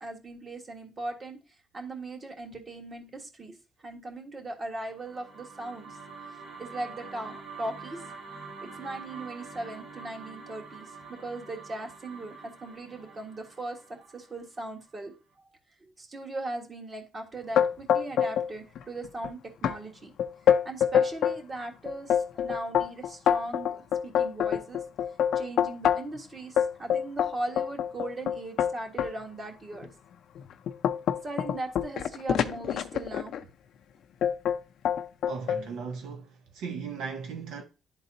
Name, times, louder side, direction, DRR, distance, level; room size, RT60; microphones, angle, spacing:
voice 1, 0.0-1.4 1.7-3.6 3.8-6.0 6.6-8.1 8.6-15.5 15.8-20.1 20.6-24.8 25.3-29.9 31.2-33.5, right 2 dB, 35° right, 1.5 m, -39 dB
sound 1, 4.7-15.0, right 4 dB, 60° right, 1.9 m, -46 dB
sound 2, 17.5-18.5 18.7-19.3 19.6-19.8 20.2-21.4 21.8-26.2 26.6-29.1 29.7-29.9 30.3-33.4 34.2-34.6 34.8-35.6, left 9 dB, 70° left, 0.5 m, -25 dB
voice 2, 35.3-37.6, right 5 dB, 90° right, 0.8 m, -37 dB
11.0 x 3.9 x 2.7 m
cardioid pair, 90°, 0 cm